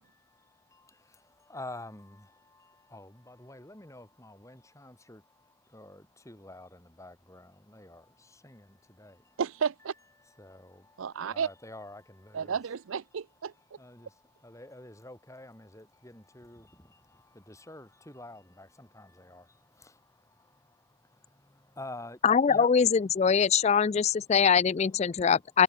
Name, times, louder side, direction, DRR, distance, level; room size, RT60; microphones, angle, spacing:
voice 1, 0.0-9.4 10.2-12.6 13.5-22.7 23.1-24.4 25.1-25.3, left 1 dB, 15° left, 4.0 m, -49 dB
voice 2, 9.4-9.9 11.0-11.5 12.3-13.5, right 6 dB, 75° right, 0.5 m, -32 dB
voice 3, 22.2-25.6, left 6 dB, 30° left, 0.3 m, -23 dB
head